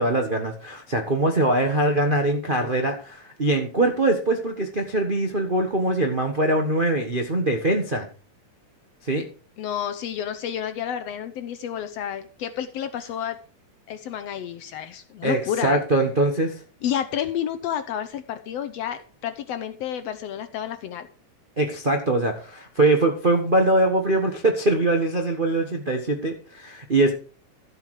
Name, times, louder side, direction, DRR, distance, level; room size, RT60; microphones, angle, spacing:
voice 1, 0.0-8.1 9.0-9.2 15.2-16.5 21.6-27.2, right 2 dB, 60° right, 2 dB, 0.5 m, -22 dB
voice 2, 9.6-13.4 13.9-15.8 16.8-21.1, left 9 dB, 70° left, 10 dB, 1.6 m, -30 dB
13.0 x 8.2 x 4.8 m, 0.38 s
omnidirectional pair, 3.5 m